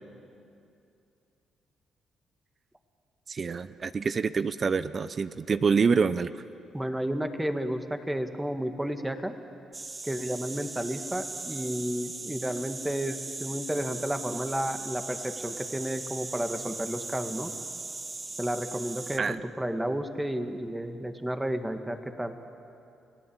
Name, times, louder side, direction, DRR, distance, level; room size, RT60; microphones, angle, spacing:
voice 1, 3.3-6.3 19.2-19.4, right 5 dB, 40° right, 14 dB, 0.6 m, -26 dB
voice 2, 6.7-9.3 10.0-17.5 18.4-22.3, right 1 dB, 10° right, 7 dB, 1.9 m, -32 dB
sound 1, 9.7-19.2, right 3 dB, 25° right, 1.1 m, -39 dB
30.0 x 18.0 x 8.8 m, 2.6 s
cardioid pair, 90°, 0 cm